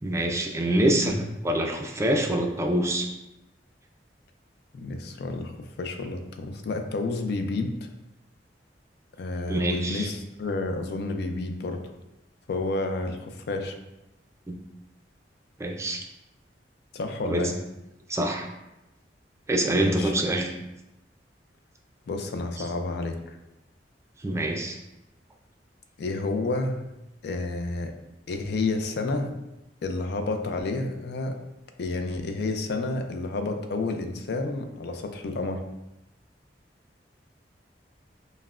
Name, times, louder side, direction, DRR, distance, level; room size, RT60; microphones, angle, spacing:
voice 1, 0.0-3.1 9.5-10.1 14.5-14.6 15.6-16.0 17.2-17.4 18.1-18.5 19.5-20.5 22.6-22.7 24.2-24.8, right 1 dB, 15° right, 2 dB, 0.4 m, -25 dB
voice 2, 4.7-7.9 9.2-11.8 12.5-13.8 16.9-17.5 19.7-20.1 22.1-23.4 26.0-26.8 27.2-27.9 28.3-29.3 29.8-31.4 31.8-35.6, left 2 dB, 65° left, 5 dB, 0.4 m, -30 dB
5.5 x 2.1 x 2.4 m, 0.93 s
head